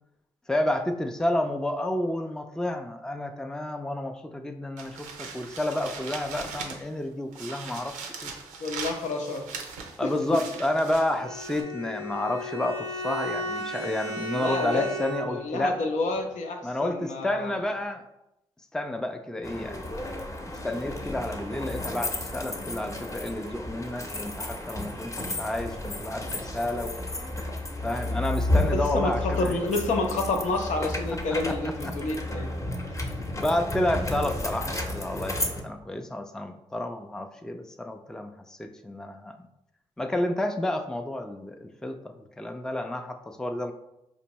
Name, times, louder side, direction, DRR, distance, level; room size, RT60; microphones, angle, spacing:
voice 1, 0.5-8.3 10.0-15.8 16.6-18.1 18.7-19.9 20.6-26.9 27.8-29.6 31.1-31.2 31.4-31.5 31.8-31.9 33.4-39.3 40.0-43.7, left 1 dB, 5° left, 6 dB, 0.4 m, -30 dB
sound 1, 4.8-7.0 7.3-11.6, right 5 dB, 90° right, 0.5 m, -40 dB
voice 2, 8.6-9.5 10.0-10.1 14.3-14.9 15.3-17.6 28.7-32.5, left 2 dB, 70° left, 3 dB, 0.7 m, -29 dB
Bowed string instrument, 11.1-15.6, equal, 85° left, 1.0 m, -35 dB
sound 2, 19.4-35.6, left 1 dB, 25° left, 0.8 m, -32 dB
4.2 x 2.7 x 3.0 m, 0.87 s
hypercardioid pair, 40°, 13 cm